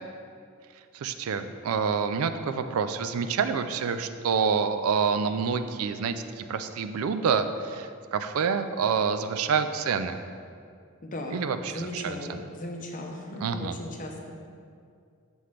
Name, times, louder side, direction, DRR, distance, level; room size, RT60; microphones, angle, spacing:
voice 1, 0.9-10.2 11.3-12.4 13.4-13.7, right 6 dB, 85° right, 10 dB, 0.4 m, -27 dB
voice 2, 11.0-14.1, left 1 dB, 40° left, 1 dB, 0.7 m, -37 dB
6.9 x 5.8 x 3.2 m, 2.3 s
head